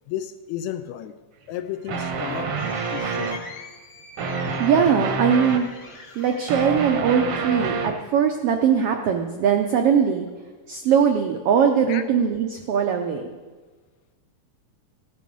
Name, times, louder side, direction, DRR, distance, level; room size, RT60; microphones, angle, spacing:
voice 1, 0.1-1.2 1.5-2.6 2.9-3.3 11.9-12.0, left 11 dB, 80° left, 10 dB, 1.7 m, -33 dB
sound 1, 1.6-7.4, left 3 dB, 60° left, 0.7 m, -44 dB
sound 2, 1.9-3.5 4.2-5.7 6.2-8.0, right 4 dB, 65° right, 1.4 m, -27 dB
voice 2, 4.6-5.7 6.2-10.3 10.7-13.2, right 7 dB, 80° right, 4 dB, 1.3 m, -21 dB
15.5 x 8.1 x 5.3 m, 1.4 s
omnidirectional pair, 3.6 m